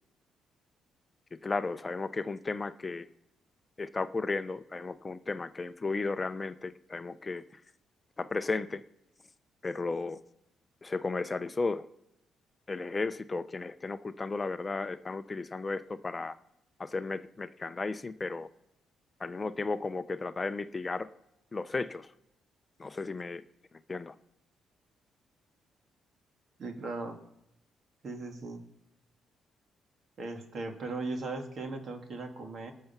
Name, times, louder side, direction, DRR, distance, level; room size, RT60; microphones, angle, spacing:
voice 1, 1.4-3.1 3.8-7.4 8.2-8.8 9.6-10.2 10.8-11.9 12.7-16.4 16.8-18.5 19.2-21.1 21.5-22.1 22.8-23.4 23.9-24.1, left 3 dB, 25° left, 11 dB, 0.5 m, -34 dB
voice 2, 26.6-27.2 28.0-28.6 30.2-32.7, right 3 dB, 50° right, 4 dB, 2.1 m, -38 dB
19.5 x 6.6 x 5.9 m, 0.84 s
cardioid pair, 90°, 0 cm